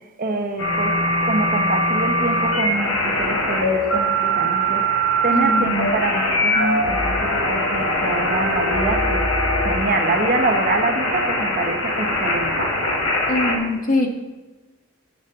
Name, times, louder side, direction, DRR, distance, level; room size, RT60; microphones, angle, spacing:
voice 1, 0.2-9.3 9.6-12.6, right 2 dB, 40° right, 4 dB, 1.2 m, -25 dB
sound 1, 0.6-13.6, equal, 80° left, 3.2 m, -21 dB
voice 2, 5.3-5.9 13.3-14.1, left 1 dB, 40° left, 2 dB, 1.5 m, -22 dB
17.5 x 6.4 x 3.8 m, 1.2 s
head